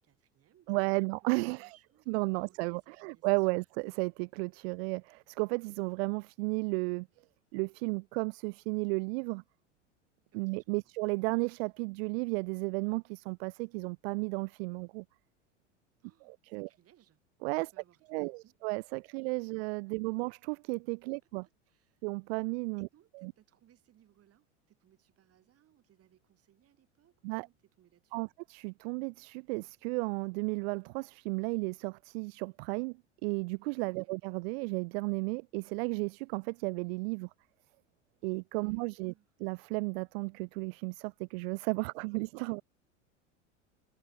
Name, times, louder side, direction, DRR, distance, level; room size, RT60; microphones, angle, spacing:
voice 1, 0.0-3.7 10.3-10.8 16.0-17.2 17.5-18.7 19.9-20.2 21.4-22.1 22.8-28.2 34.0-34.1 38.6-39.3, right 12 dB, 40° right, 6.2 m, -66 dB
voice 2, 0.7-1.7 2.1-7.1 7.5-9.4 10.3-15.0 16.2-16.7 17.4-17.7 18.1-21.4 22.0-22.9 23.1-23.3 27.2-27.5 28.1-37.3 38.2-39.1 39.4-42.6, right 29 dB, 60° right, 0.5 m, -34 dB
hypercardioid pair, 90°, 36 cm